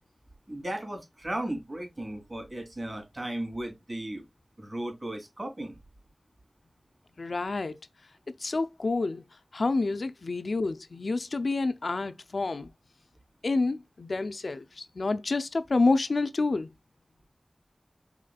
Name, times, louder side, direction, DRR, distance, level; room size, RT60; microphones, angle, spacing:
voice 1, 0.5-4.2 4.6-5.8, right 1 dB, 45° right, 2.7 m, -35 dB
voice 2, 7.2-7.8 8.4-9.2 9.5-12.7 13.4-16.7, left 3 dB, 85° left, 0.5 m, -28 dB
4.9 x 3.6 x 2.3 m
wide cardioid pair, 65°, 0 cm